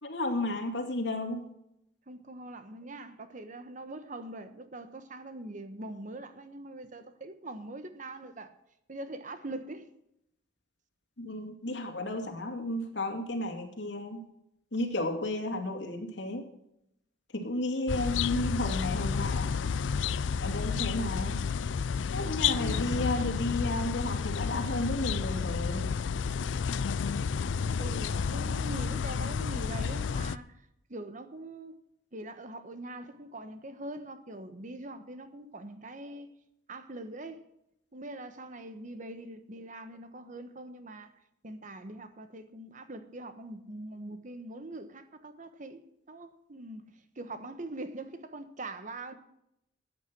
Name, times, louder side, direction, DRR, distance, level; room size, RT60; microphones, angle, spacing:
voice 1, 0.0-1.4 11.2-14.2 14.7-16.5 17.3-19.6 20.4-21.4 22.1-25.9, left 1 dB, 70° left, 2.7 m, -33 dB
voice 2, 2.1-8.5 8.9-9.9 27.8-30.6 30.9-31.8 32.1-36.3 36.7-37.5 37.9-41.1 41.4-45.8 46.1-49.1, right 2 dB, 45° right, 1.2 m, -43 dB
sound 1, 17.9-30.4, left 6 dB, 90° left, 0.4 m, -31 dB
13.5 x 9.0 x 6.1 m
head